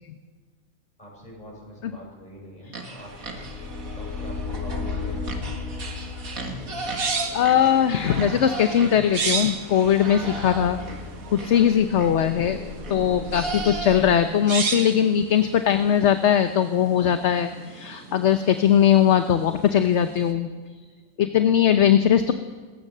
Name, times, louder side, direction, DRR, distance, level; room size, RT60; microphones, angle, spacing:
voice 1, 1.0-3.1 3.8-5.3, equal, 30° left, -2 dB, 7.4 m, -43 dB
sound 1, 2.7-14.4, right 2 dB, 85° right, 2.5 m, -37 dB
sound 2, 3.0-14.1, left 4 dB, 80° left, 4.6 m, -36 dB
sound 3, 6.5-20.3, right 5 dB, 70° right, 2.0 m, -35 dB
voice 2, 7.3-10.8 11.3-12.6 12.9-20.5 21.2-22.3, left 9 dB, 60° left, 9 dB, 1.1 m, -20 dB
26.5 x 15.0 x 6.7 m, 1.5 s
omnidirectional pair, 1.4 m